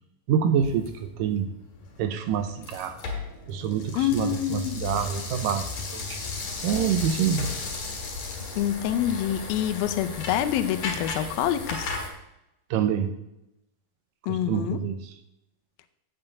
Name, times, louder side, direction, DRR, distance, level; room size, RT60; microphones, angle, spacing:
voice 1, 0.3-1.5 2.0-3.0 3.5-6.2 6.6-7.5 12.7-13.1 14.3-15.2, right 8 dB, 80° right, 8 dB, 2.1 m, -27 dB
sound 1, 0.6-12.1, left 4 dB, 50° left, 2.7 m, -35 dB
voice 2, 4.0-4.9 8.6-11.9 14.3-14.8, left 11 dB, 85° left, 10 dB, 2.4 m, -26 dB
8.9 x 5.7 x 7.9 m, 0.88 s
omnidirectional pair, 4.2 m